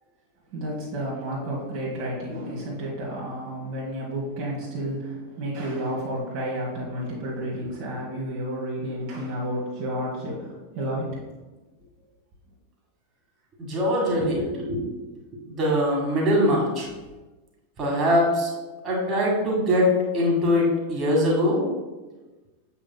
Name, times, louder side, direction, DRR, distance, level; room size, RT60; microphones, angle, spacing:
voice 1, 0.5-11.2, right 1 dB, 45° right, -5 dB, 1.5 m, -31 dB
voice 2, 13.7-14.8 15.5-16.9 17.8-18.5 18.8-19.9 20.1-21.6, equal, 30° right, -3 dB, 1.8 m, -22 dB
7.6 x 5.9 x 2.3 m, 1.2 s
figure-of-eight pair, 90°, 0 cm